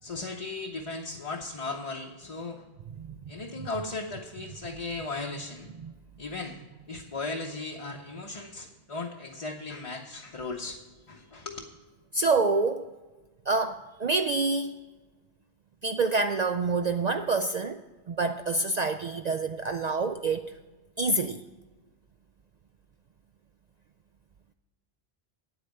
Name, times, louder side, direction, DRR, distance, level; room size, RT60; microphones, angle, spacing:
voice 1, 0.0-2.6 3.3-5.7 6.2-6.6 6.9-10.8 11.1-11.7, left 3 dB, 35° left, 0 dB, 0.8 m, -37 dB
voice 2, 12.1-12.9 13.5-14.7 15.8-17.8 18.1-20.5 21.0-21.4, right 3 dB, 55° right, 7 dB, 0.5 m, -27 dB
9.1 x 8.2 x 6.5 m, 1.3 s
omnidirectional pair, 1.1 m